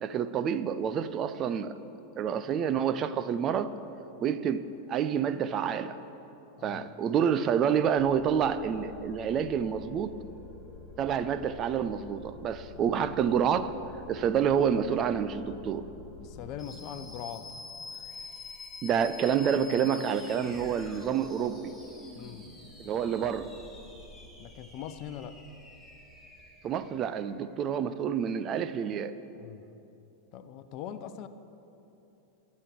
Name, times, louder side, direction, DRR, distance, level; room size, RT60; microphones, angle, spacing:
voice 1, 0.0-1.8 2.2-3.7 4.2-6.0 6.6-10.2 11.0-13.7 14.1-15.9 18.8-21.8 22.8-23.5 26.6-29.1, right 8 dB, 30° right, 13 dB, 0.6 m, -28 dB
voice 2, 6.6-6.9 12.8-13.2 16.2-17.5 22.1-22.5 24.4-25.4 29.4-29.7 30.3-31.3, left 9 dB, 40° left, 11 dB, 0.8 m, -42 dB
sound 1, 8.0-27.3, left 3 dB, ahead, 2.8 m, -47 dB
22.5 x 8.5 x 6.2 m, 2.9 s
figure-of-eight pair, 90°, 0 cm